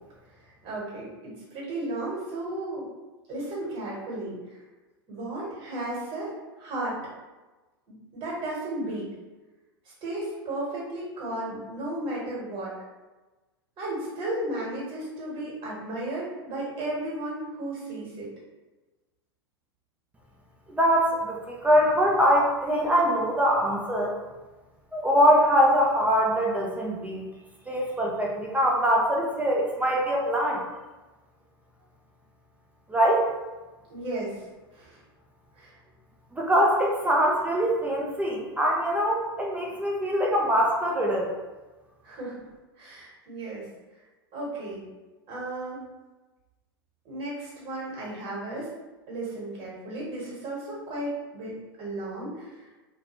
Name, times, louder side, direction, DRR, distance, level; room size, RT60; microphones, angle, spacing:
voice 1, 0.6-2.9 3.3-4.6 5.1-7.0 7.9-9.1 10.0-12.7 13.8-18.3 33.9-34.4 34.7-35.0 35.6-35.7 42.0-42.5 42.8-43.7 44.3-44.8 45.3-45.9 47.0-48.7 49.1-52.7, right 1 dB, 40° right, -5 dB, 1.2 m, -34 dB
voice 2, 20.7-24.1 24.9-27.3 27.7-30.6 32.9-33.3 36.3-41.3, equal, 10° right, -2 dB, 0.4 m, -23 dB
2.3 x 2.2 x 2.9 m, 1.2 s
hypercardioid pair, 100°, 13 cm